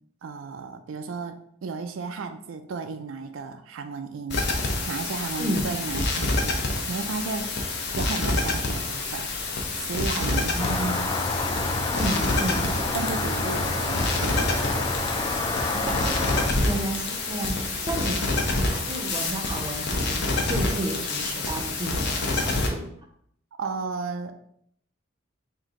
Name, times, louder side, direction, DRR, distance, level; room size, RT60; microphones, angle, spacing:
voice 1, 0.2-4.5 4.9-6.6 6.9-7.5 7.9-9.3 9.8-11.1 12.9-14.7 16.5-16.8 17.8-18.1 23.6-24.4, right 4 dB, 80° right, 7 dB, 0.4 m, -34 dB
sound 1, 4.3-22.7, left 2 dB, 60° left, 0.7 m, -27 dB
voice 2, 5.4-5.7 10.2-11.0 11.9-12.7 15.7-16.2 16.6-18.2 18.6-22.9, right 1 dB, 25° right, 3 dB, 0.6 m, -32 dB
sound 2, 10.6-16.5, left 2 dB, 20° left, 0.3 m, -28 dB
3.8 x 2.7 x 4.8 m, 0.69 s
head